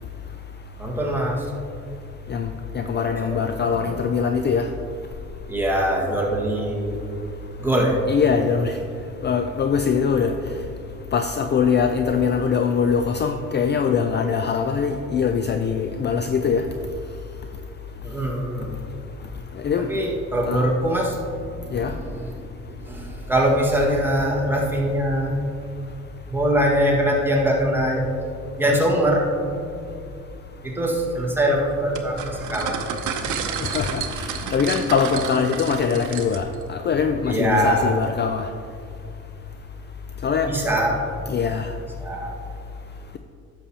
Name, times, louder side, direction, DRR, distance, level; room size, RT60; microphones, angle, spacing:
voice 1, 0.8-1.4 2.7-2.8 3.2-3.5 3.8-4.0 5.5-7.0 7.6-8.0 18.0-18.7 19.9-21.2 21.6-22.3 22.6-25.3 26.3-28.0 28.6-29.3 30.6-32.8 37.2-38.0 40.5-41.0 42.0-42.3, right 1 dB, 5° right, -3 dB, 1.7 m, -22 dB
voice 2, 2.7-4.7 8.1-8.7 9.2-10.3 11.1-16.6 19.6-20.0 20.5-20.7 21.7-21.9 33.6-38.5 40.2-40.5 41.3-41.7, left 6 dB, 35° left, 6 dB, 0.4 m, -22 dB
sound 1, 31.9-36.6, right 7 dB, 75° right, 0.8 m, -31 dB
11.0 x 7.0 x 2.9 m, 2.4 s
cardioid pair, 90°, 30 cm